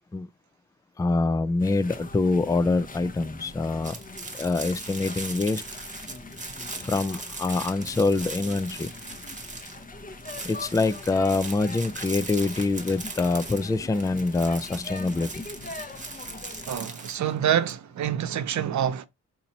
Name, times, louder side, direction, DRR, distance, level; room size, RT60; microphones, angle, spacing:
voice 1, 1.0-3.9 4.4-5.6 6.8-8.9 10.4-15.3, left 3 dB, 10° left, 0.3 m, -25 dB
sound 1, 1.6-16.8, left 2 dB, 30° left, 0.8 m, -42 dB
Plastic crumple, 3.8-9.9 10.2-17.7, right 3 dB, 25° right, 1.1 m, -39 dB
voice 2, 16.7-19.1, right 9 dB, 70° right, 0.6 m, -26 dB
4.0 x 2.8 x 2.7 m
cardioid pair, 70°, 29 cm